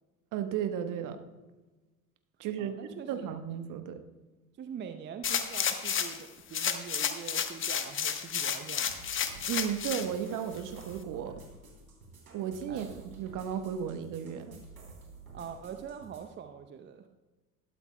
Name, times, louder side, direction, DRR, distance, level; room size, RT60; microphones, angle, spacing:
voice 1, 0.3-1.2 2.4-2.8 3.1-4.0 9.5-11.4 12.3-12.9 13.2-14.6, right 9 dB, 45° right, 8 dB, 1.2 m, -34 dB
voice 2, 2.6-3.3 4.6-9.0 12.7-12.9 15.3-17.1, right 7 dB, 25° right, 7 dB, 0.7 m, -44 dB
sound 1, 5.2-6.2 6.5-10.1 10.6-10.7, left 8 dB, 30° left, 1.2 m, -31 dB
sound 2, 8.9-16.2, right 3 dB, 80° right, 3.3 m, -51 dB
20.0 x 12.0 x 2.2 m, 1.2 s
figure-of-eight pair, 65°, 43 cm